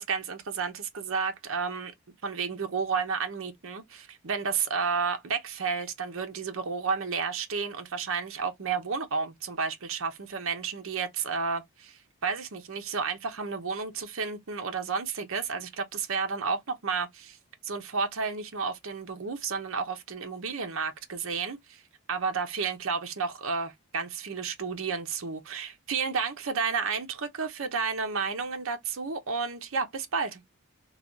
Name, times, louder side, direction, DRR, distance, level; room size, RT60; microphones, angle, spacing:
voice 1, 0.0-1.9 2.2-17.4 17.6-21.8 22.1-30.4, right 5 dB, 60° right, 0.7 m, -31 dB
3.2 x 2.3 x 2.6 m
head